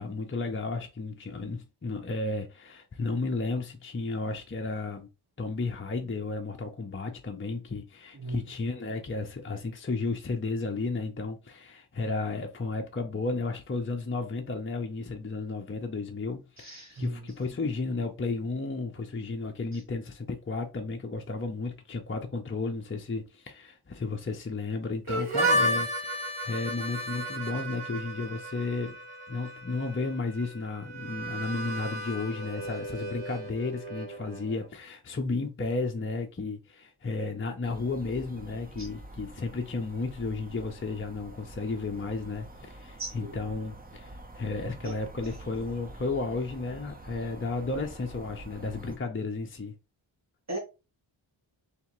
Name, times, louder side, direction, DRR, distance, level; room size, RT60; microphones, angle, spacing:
voice 1, 0.0-5.1 5.4-28.9 29.3-49.7, left 3 dB, 25° left, 0.7 m, -33 dB
voice 2, 16.6-17.3 38.8-38.9 43.0-43.3 44.8-45.0 50.5-50.6, right 2 dB, 35° right, 1.9 m, -37 dB
Harmonica, 25.1-34.7, right 1 dB, 85° right, 1.4 m, -33 dB
sound 1, 37.6-49.0, right 1 dB, 20° right, 0.8 m, -47 dB
3.6 x 3.5 x 3.0 m
wide cardioid pair, 75°, 49 cm